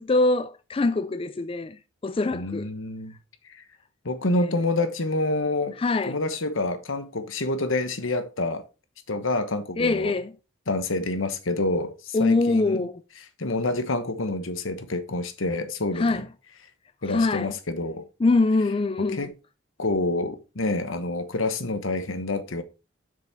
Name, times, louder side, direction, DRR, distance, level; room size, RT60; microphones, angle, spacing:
voice 1, 0.0-2.7 4.4-4.6 5.8-6.2 9.8-10.3 12.1-13.0 16.0-16.3 17.1-17.5 18.2-19.3, left 3 dB, 25° left, 0.3 m, -24 dB
voice 2, 2.3-3.1 3.4-3.6 4.0-5.8 6.1-8.6 9.1-10.1 10.7-12.9 13.4-16.2 17.0-18.1 19.1-19.3 19.8-22.6, left 2 dB, 80° left, 1.2 m, -27 dB
7.4 x 6.2 x 4.7 m
head